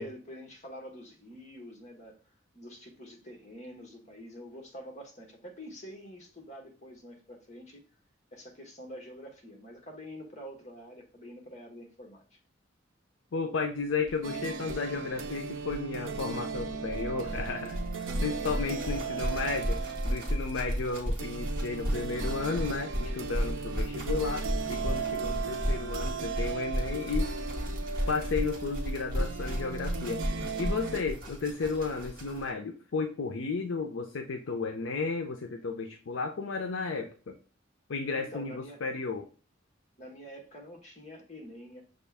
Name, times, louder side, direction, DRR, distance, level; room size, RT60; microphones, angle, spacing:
voice 1, 0.0-2.2 2.5-7.8 8.3-12.2 18.5-19.4 38.1-38.8 40.0-41.8, equal, 35° left, 2 dB, 1.3 m, -46 dB
voice 2, 13.3-19.8 20.0-27.3 28.1-37.3 37.9-39.3, left 4 dB, 70° left, 4 dB, 0.5 m, -33 dB
sound 1, 14.1-14.2 14.4-14.5 14.6-32.5, equal, 50° right, 1.2 m, -34 dB
sound 2, 14.2-31.0, right 5 dB, 70° right, 0.5 m, -37 dB
6.3 x 2.4 x 3.4 m, 0.36 s
head